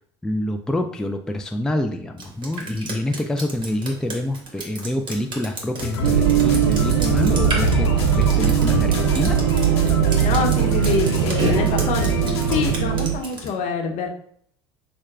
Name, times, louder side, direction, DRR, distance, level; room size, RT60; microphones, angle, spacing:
voice 1, 0.2-9.4, left 1 dB, 5° left, 5 dB, 0.3 m, -27 dB
Drip, 2.2-13.5, right 1 dB, 35° right, 1.3 m, -32 dB
sound 1, 5.8-12.8, left 4 dB, 85° left, 0.8 m, -27 dB
sound 2, 6.0-13.2, right 10 dB, 75° right, 0.4 m, -20 dB
voice 2, 10.2-12.1 12.5-14.1, left 4 dB, 55° left, 3 dB, 0.9 m, -25 dB
6.3 x 2.2 x 2.4 m, 0.64 s
hypercardioid pair, 70°, 14 cm